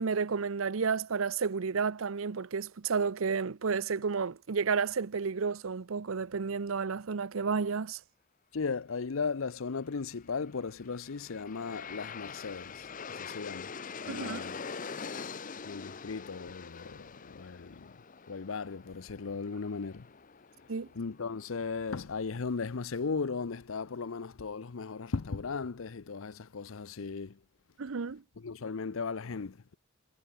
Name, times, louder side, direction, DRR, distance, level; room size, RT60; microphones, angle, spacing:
voice 1, 0.0-8.0 14.1-14.4 20.7-20.9 27.8-28.2, right 5 dB, 85° right, 0.7 m, -31 dB
voice 2, 8.5-13.7 14.1-14.6 15.6-17.9 18.3-20.1 20.9-27.4 28.4-29.8, left 4 dB, 85° left, 0.7 m, -37 dB
Aircraft, 10.6-21.7, left 5 dB, 40° left, 0.8 m, -44 dB
head